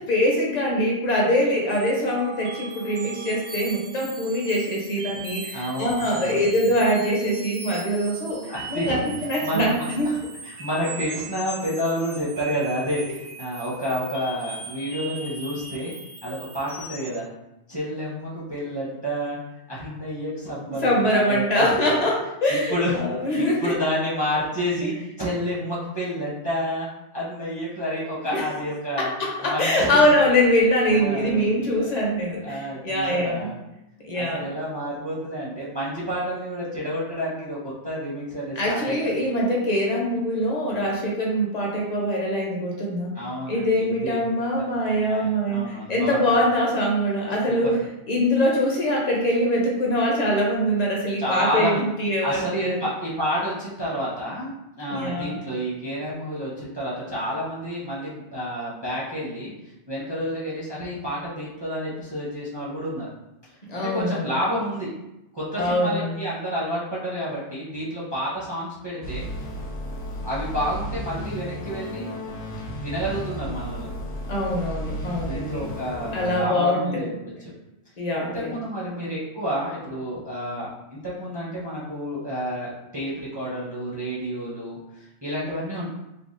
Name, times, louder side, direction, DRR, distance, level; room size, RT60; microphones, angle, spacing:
voice 1, 0.0-10.1 20.7-23.7 28.3-28.4 29.0-33.5 34.0-34.5 38.6-43.1 43.5-47.8 48.1-52.8 54.9-55.4 63.7-64.3 65.6-66.2 74.3-75.6 76.1-77.2 78.0-78.6, equal, 45° left, -2 dB, 0.6 m, -23 dB
sound 1, 1.7-17.2, right 3 dB, 70° right, 1.0 m, -39 dB
voice 2, 5.5-6.5 8.5-9.0 9.4-10.1 10.4-15.9 16.2-17.3 17.7-19.4 19.7-22.1 22.7-23.0 23.4-29.1 29.4-30.3 30.9-31.7 32.4-33.5 34.1-39.1 43.1-46.2 47.5-47.9 51.2-51.8 52.2-59.5 59.9-63.1 63.7-64.9 65.3-69.3 70.2-72.1 72.7-73.9 75.2-77.1 78.2-85.9, equal, 30° right, -7 dB, 0.5 m, -30 dB
sound 2, 69.0-76.4, equal, 80° left, 1.0 m, -33 dB
3.4 x 2.2 x 2.5 m, 0.92 s
omnidirectional pair, 1.2 m